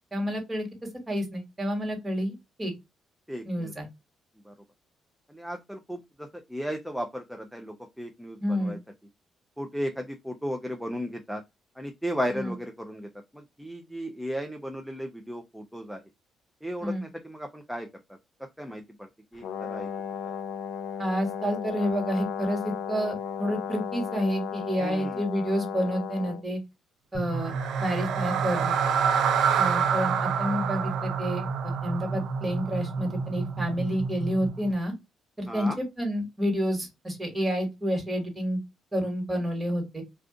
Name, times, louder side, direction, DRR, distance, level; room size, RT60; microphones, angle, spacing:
voice 1, 0.1-0.7 1.1-2.7 3.4-3.9 8.4-8.8 12.3-12.5 16.8-17.0 21.0-26.6 27.1-28.8 29.6-34.9 35.4-38.6 38.9-40.0, equal, 20° right, 1.5 m, -29 dB
voice 2, 3.3-3.7 4.4-4.5 5.3-8.8 9.6-11.4 11.8-16.0 16.6-17.9 18.6-19.9 20.2-20.3 24.8-25.2 35.5-35.8, equal, ahead, 0.5 m, -35 dB
Brass instrument, 19.4-26.4, left 8 dB, 80° left, 0.4 m, -35 dB
sound 1, 27.1-34.7, right 4 dB, 30° left, 1.0 m, -33 dB
sound 2, 27.3-33.4, right 7 dB, 75° right, 0.4 m, -28 dB
2.4 x 2.4 x 3.6 m
cardioid pair, 90°, 0 cm